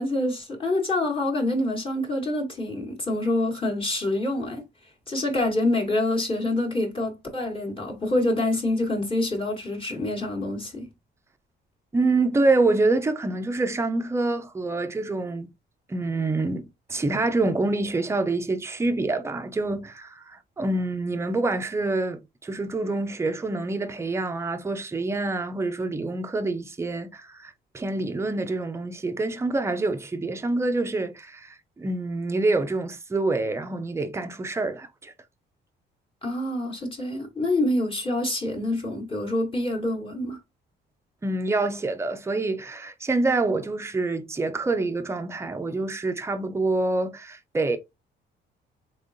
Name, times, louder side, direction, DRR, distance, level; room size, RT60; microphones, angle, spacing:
voice 1, 0.0-4.6 5.1-10.9 36.2-40.4, left 1 dB, 25° left, 1.2 m, -26 dB
voice 2, 11.9-15.5 15.9-35.1 41.2-47.8, right 2 dB, 15° right, 0.5 m, -26 dB
3.6 x 3.0 x 2.6 m
cardioid pair, 90°, 20 cm